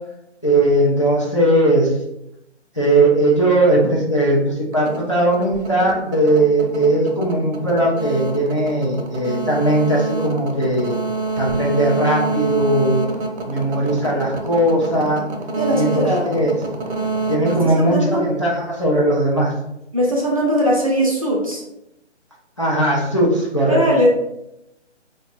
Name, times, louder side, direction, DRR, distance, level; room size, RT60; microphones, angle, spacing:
voice 1, 0.4-1.9 2.7-11.0 11.4-13.0 13.5-15.2 15.7-16.6 17.3-19.5 22.6-23.8, right 1 dB, 25° left, -7 dB, 0.4 m, -18 dB
sound 1, 4.7-18.6, right 3 dB, 70° right, 0.7 m, -26 dB
voice 2, 15.6-16.3 17.5-18.2 19.9-21.6 23.7-24.1, equal, 30° right, -3 dB, 0.5 m, -20 dB
3.7 x 2.1 x 2.4 m, 0.85 s
figure-of-eight pair, 155°, 35 cm